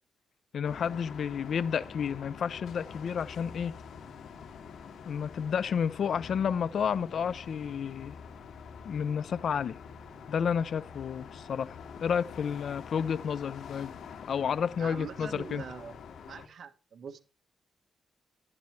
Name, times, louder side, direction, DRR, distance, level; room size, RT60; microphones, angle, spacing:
voice 1, 0.5-3.8 5.0-8.2 8.8-9.8 10.3-11.8 12.0-13.9 14.3-15.6, left 7 dB, 65° left, 0.6 m, -31 dB
Louisville City Hall, 0.6-16.5, left 6 dB, 85° left, 2.1 m, -46 dB
voice 2, 14.8-16.0 16.3-17.2, right 6 dB, 65° right, 1.4 m, -43 dB
12.0 x 11.0 x 3.3 m
cardioid pair, 100°, 0 cm